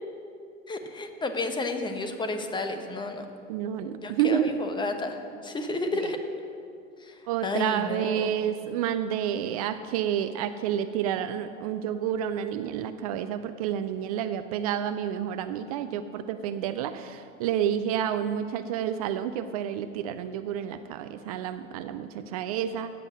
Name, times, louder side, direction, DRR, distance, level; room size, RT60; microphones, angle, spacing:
voice 1, 0.7-3.2 4.0-6.2 7.0-8.3, left 2 dB, 10° left, 7 dB, 1.0 m, -31 dB
voice 2, 3.5-4.5 7.3-22.9, right 9 dB, 30° right, 10 dB, 0.4 m, -29 dB
14.5 x 8.7 x 6.2 m, 2.5 s
figure-of-eight pair, 90°, 41 cm